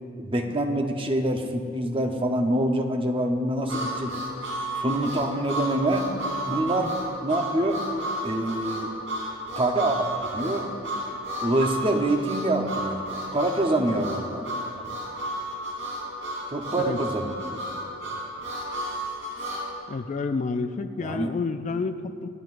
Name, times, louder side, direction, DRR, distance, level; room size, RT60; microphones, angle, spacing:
voice 1, 0.2-4.1 4.8-6.1 6.5-6.9 7.2-7.8 8.2-8.9 9.5-10.6 11.4-13.0 13.3-14.5 16.5-17.5 21.0-21.3, right 1 dB, 25° right, 4 dB, 0.8 m, -25 dB
Harmonica, 3.7-19.7, right 1 dB, 65° right, 3.1 m, -32 dB
voice 2, 19.9-22.3, left 4 dB, 35° left, 9 dB, 0.3 m, -29 dB
26.5 x 9.6 x 2.5 m, 2.6 s
head